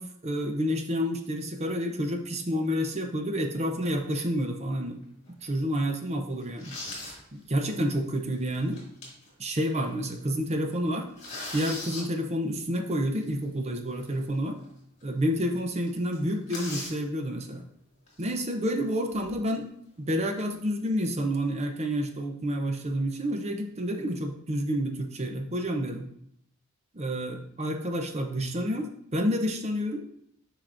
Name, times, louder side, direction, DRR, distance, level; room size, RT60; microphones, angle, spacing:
voice 1, 0.0-5.0 5.4-6.7 7.3-8.8 9.4-11.1 11.5-14.6 15.0-17.7 18.2-19.7 20.0-26.1 26.9-30.1, equal, 30° right, 4 dB, 0.6 m, -29 dB
sound 1, 5.0-5.3 5.8-5.9 6.4-7.2 7.6-7.7 8.5-9.3 9.7-9.8 10.1-10.3 10.7-12.0 14.0-14.1 14.6-14.7 15.0-15.1 15.4-15.6 15.8-17.0 18.1-18.3 18.9-19.5, left 2 dB, 30° left, 2.2 m, -39 dB
7.5 x 4.9 x 2.6 m, 0.70 s
head